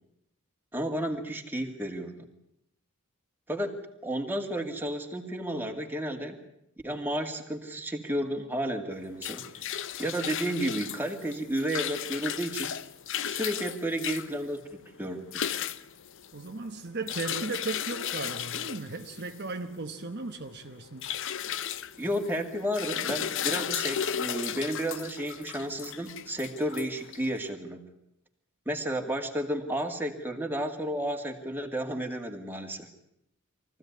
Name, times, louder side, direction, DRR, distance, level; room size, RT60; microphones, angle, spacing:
voice 1, 0.7-2.3 3.5-6.4 6.8-9.6 10.0-12.7 13.2-14.7 15.0-15.5 22.0-27.8 28.7-32.9, right 1 dB, 10° right, 2.3 m, -32 dB
sound 1, 8.9-27.4, left 9 dB, 60° left, 0.8 m, -35 dB
voice 2, 16.3-21.1, right 3 dB, 50° right, 1.1 m, -36 dB
23.5 x 15.5 x 9.5 m
head